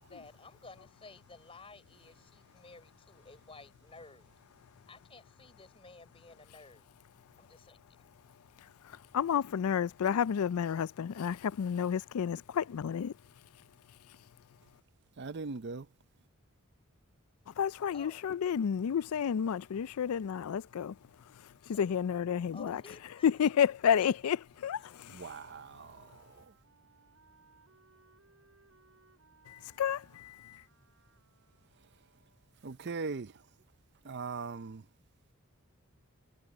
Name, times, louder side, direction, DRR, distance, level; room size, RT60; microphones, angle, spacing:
voice 1, 0.0-4.3 4.9-6.9 7.4-8.0 17.9-18.2 21.7-22.0 22.5-23.3, left 3 dB, 25° left, 5.3 m, -54 dB
voice 2, 8.8-13.1 17.5-21.0 21.4-22.8 23.2-25.4 29.5-30.6, left 8 dB, 80° left, 0.4 m, -31 dB
voice 3, 15.2-15.9 25.1-26.5 32.6-33.3 34.0-34.8, right 4 dB, 50° right, 0.6 m, -40 dB
Wind instrument woodwind instrument, 24.6-32.9, right 4 dB, 70° right, 5.5 m, -67 dB
head